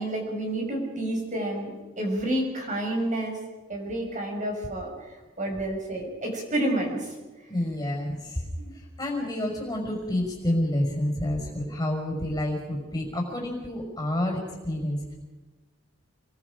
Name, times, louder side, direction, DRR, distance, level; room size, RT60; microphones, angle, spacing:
voice 1, 0.0-3.4 3.7-7.1 8.6-8.7, right 1 dB, 35° right, 0 dB, 5.9 m, -30 dB
voice 2, 7.5-8.4 8.7-15.1, left 1 dB, 20° left, 1 dB, 5.6 m, -29 dB
29.0 x 22.5 x 5.1 m, 1.2 s
head